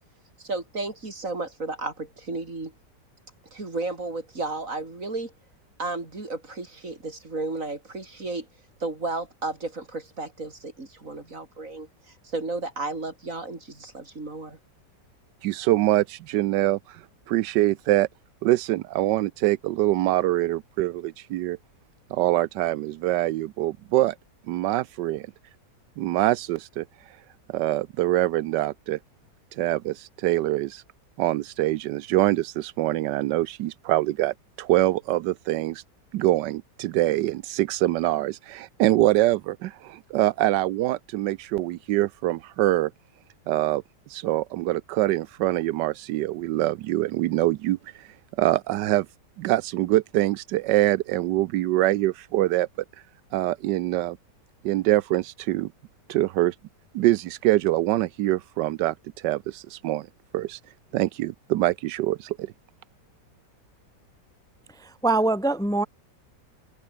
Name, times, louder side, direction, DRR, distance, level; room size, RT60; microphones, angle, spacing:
voice 1, 0.4-2.7 3.5-5.3 5.8-8.5 8.8-11.9 12.2-14.6, right 3 dB, 50° right, 4.5 m, -33 dB
voice 2, 15.4-18.1 18.4-21.6 22.1-24.2 24.5-25.3 26.0-27.2 27.5-29.0 29.5-30.8 31.2-35.8 36.1-42.9 43.5-43.8 44.1-49.1 49.4-52.7 53.3-54.2 54.6-55.7 56.1-56.5 56.9-60.1 60.3-60.6 60.9-62.5, right 15 dB, 85° right, 1.3 m, -24 dB
voice 3, 64.7-65.9, right 2 dB, ahead, 1.3 m, -24 dB
omnidirectional pair, 1.8 m